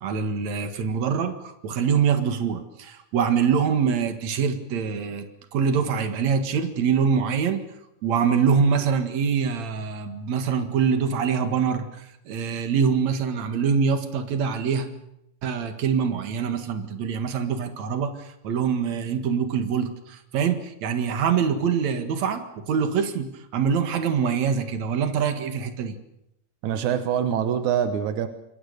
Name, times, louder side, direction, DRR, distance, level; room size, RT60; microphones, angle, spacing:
voice 1, 0.0-5.3 5.5-7.6 8.0-14.9 15.4-26.0, right 6 dB, 70° right, 8 dB, 3.0 m, -24 dB
voice 2, 26.6-28.3, right 9 dB, 90° right, 9 dB, 2.6 m, -24 dB
27.0 x 22.0 x 6.7 m, 0.82 s
omnidirectional pair, 3.3 m